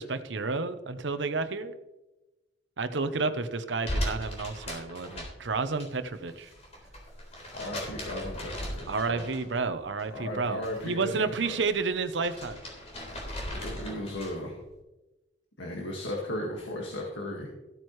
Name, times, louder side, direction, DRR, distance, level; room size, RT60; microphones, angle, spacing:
voice 1, 0.0-1.7 2.8-6.5 8.9-12.6, right 4 dB, 70° right, 11 dB, 0.8 m, -31 dB
sound 1, 3.8-5.9 6.1-9.6 10.0-10.9 11.3-14.5, equal, 35° left, 3.8 m, -38 dB
voice 2, 7.5-9.2 10.1-11.6 13.5-14.6 15.6-17.5, left 1 dB, 75° left, -1 dB, 1.9 m, -36 dB
15.0 x 9.0 x 3.2 m, 1.0 s
head